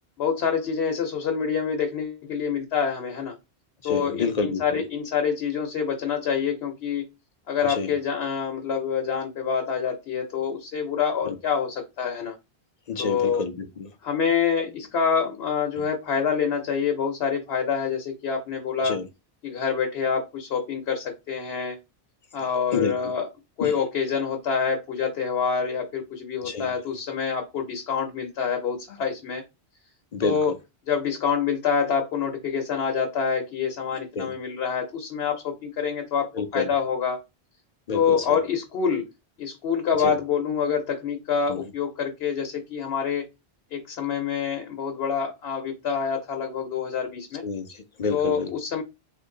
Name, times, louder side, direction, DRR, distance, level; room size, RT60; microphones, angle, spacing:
voice 1, 0.2-3.4 3.8-7.0 7.5-12.3 13.0-13.4 14.0-19.0 19.4-21.8 22.3-23.3 23.6-29.4 30.2-30.5 30.9-37.2 37.9-39.1 39.4-43.3 43.7-47.4 48.1-48.8, left 6 dB, 75° left, 0.9 m, -26 dB
voice 2, 3.8-4.8 7.6-7.9 11.2-11.4 12.9-13.9 15.8-15.9 18.8-19.1 22.4-23.1 23.6-23.7 26.4-26.7 30.1-30.4 34.1-34.3 36.3-36.7 37.9-38.4 40.0-40.2 41.5-41.6 47.4-48.5, left 4 dB, 55° left, 0.5 m, -29 dB
2.9 x 2.6 x 3.7 m
omnidirectional pair, 1.1 m